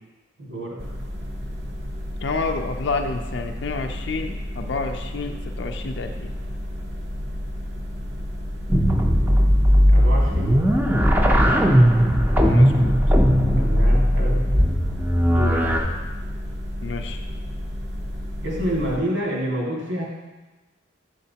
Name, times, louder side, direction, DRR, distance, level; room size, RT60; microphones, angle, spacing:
voice 1, 0.4-0.8 9.9-10.5 13.6-14.7 15.3-15.8 18.4-20.0, equal, 80° right, -4 dB, 1.9 m, -28 dB
sound 1, 0.8-19.0, equal, 60° right, 0.7 m, -32 dB
voice 2, 2.2-6.3 12.5-12.9 16.8-17.2, left 4 dB, 65° left, 4 dB, 0.4 m, -29 dB
sound 2, 8.7-15.8, equal, 10° right, 0.5 m, -17 dB
7.8 x 6.7 x 2.8 m, 1.2 s
head